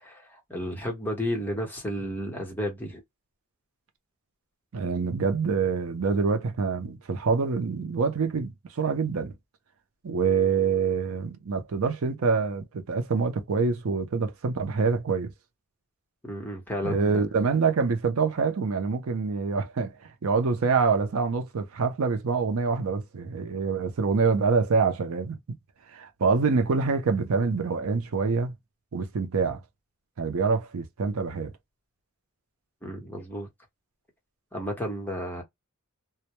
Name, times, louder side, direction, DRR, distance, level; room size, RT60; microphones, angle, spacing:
voice 1, 0.0-3.0 16.2-17.2 32.8-33.5 34.5-35.4, equal, 10° left, 0.8 m, -32 dB
voice 2, 4.7-9.3 10.0-15.3 16.8-19.9 20.2-25.6 25.9-28.5 28.9-29.6 30.2-31.5, right 5 dB, 70° right, 0.5 m, -26 dB
2.1 x 2.1 x 2.8 m
head